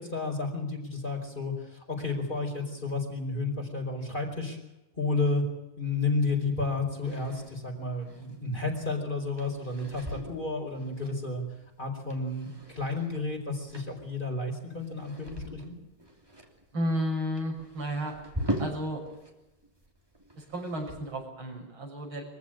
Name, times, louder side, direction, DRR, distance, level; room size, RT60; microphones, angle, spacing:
voice 1, 0.0-4.6 5.0-5.4 5.8-11.4 11.8-15.8, left 3 dB, 25° left, 2 dB, 4.9 m, -31 dB
sound 1, 7.0-19.3 19.6-21.2, equal, 10° right, 2.9 m, -41 dB
voice 2, 16.7-18.1 18.6-19.0 20.4-22.2, equal, 90° right, -1 dB, 7.2 m, -32 dB
24.0 x 15.5 x 8.8 m, 0.97 s
omnidirectional pair, 2.2 m